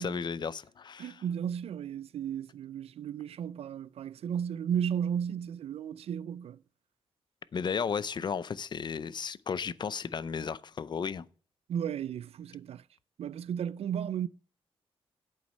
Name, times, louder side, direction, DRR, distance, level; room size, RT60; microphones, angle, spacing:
voice 1, 0.0-1.2 7.5-11.2, left 6 dB, 45° left, 0.5 m, -34 dB
voice 2, 1.0-6.6 11.7-12.8 13.2-14.3, right 8 dB, 75° right, 0.4 m, -34 dB
8.4 x 8.0 x 5.4 m
wide cardioid pair, 115°, 10 cm